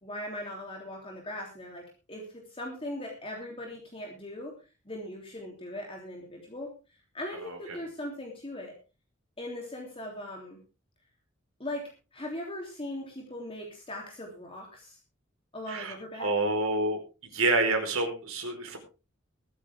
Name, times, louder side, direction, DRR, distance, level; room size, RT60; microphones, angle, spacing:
voice 1, 0.0-1.8 2.1-4.5 4.8-6.7 7.1-8.7 9.4-10.6 11.6-11.8 12.1-15.0 15.5-16.3, left 1 dB, 25° left, -1 dB, 3.3 m, -39 dB
voice 2, 7.4-7.8 15.7-17.0 17.3-18.8, right 2 dB, 85° right, 4 dB, 4.7 m, -28 dB
22.0 x 9.3 x 3.7 m, 0.33 s
head